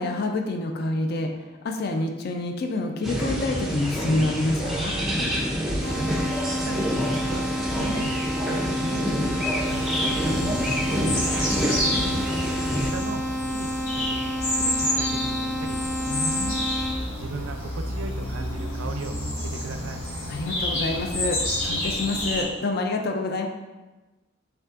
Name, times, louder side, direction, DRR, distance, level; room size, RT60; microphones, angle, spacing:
voice 1, 0.0-5.0 11.8-12.3 16.1-16.6 20.3-23.5, left 2 dB, 50° left, 4 dB, 0.4 m, -28 dB
sound 1, 3.0-12.9, equal, ahead, 0.5 m, -27 dB
sound 2, 5.8-16.9, equal, 30° left, 1.5 m, -30 dB
voice 2, 6.5-7.5 7.8-11.6 12.9-15.9 17.1-20.0, right 3 dB, 80° right, 7 dB, 0.4 m, -37 dB
sound 3, 9.6-22.4, left 1 dB, 80° left, 1.5 m, -29 dB
5.6 x 3.5 x 2.5 m, 1.2 s
head